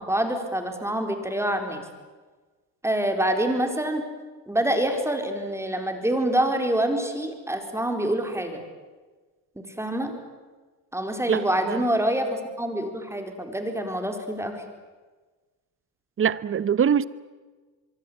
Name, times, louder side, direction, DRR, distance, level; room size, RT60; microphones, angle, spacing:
voice 1, 0.0-1.8 2.8-4.0 4.5-8.6 9.6-10.1 10.9-14.6, right 1 dB, 5° right, 4.3 m, -26 dB
voice 2, 11.3-11.8 16.2-17.0, right 8 dB, 30° right, 1.0 m, -23 dB
25.0 x 23.5 x 8.8 m
supercardioid pair, 105°, 43 cm